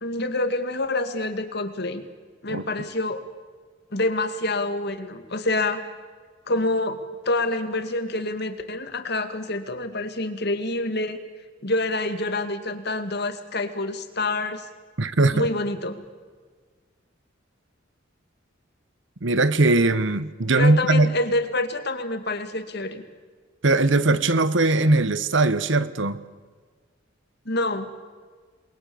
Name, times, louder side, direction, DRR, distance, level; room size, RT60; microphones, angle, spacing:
voice 1, 0.0-2.0 2.4-3.2 3.9-5.8 6.5-11.2 11.6-14.6 15.3-16.0 20.6-23.0 27.5-27.9, left 2 dB, 55° left, 2.2 m, -27 dB
voice 2, 15.0-15.5 19.2-21.1 23.6-26.2, right 2 dB, 65° right, 1.2 m, -20 dB
28.5 x 22.0 x 7.1 m
head